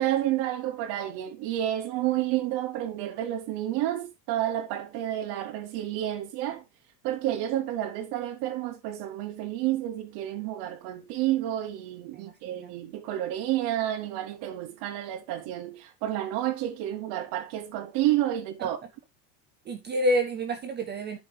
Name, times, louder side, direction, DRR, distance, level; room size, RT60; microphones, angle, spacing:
voice 1, 0.0-6.6 7.0-18.8, right 13 dB, 50° right, 0.9 m, -30 dB
voice 2, 12.1-12.7 19.7-21.2, equal, 20° right, 0.4 m, -29 dB
13.0 x 5.0 x 3.3 m
cardioid pair, 155°, 49 cm